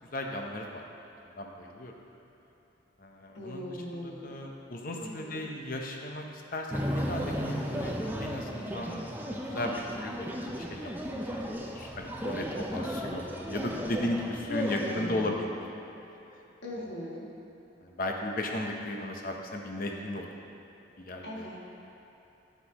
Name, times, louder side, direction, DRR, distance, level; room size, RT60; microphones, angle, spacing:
voice 1, 0.1-0.9 1.2-1.9 3.0-7.9 8.2-11.4 11.7-15.7 17.8-20.5 21.0-21.5, left 1 dB, 50° left, 1 dB, 0.8 m, -36 dB
voice 2, 3.3-4.3 4.9-5.3 14.5-15.3 16.6-17.3 21.2-21.6, left 1 dB, 80° left, -4 dB, 1.6 m, -39 dB
sound 1, 6.7-15.3, equal, 10° right, 0.5 m, -35 dB
10.0 x 9.4 x 3.0 m, 3.0 s
head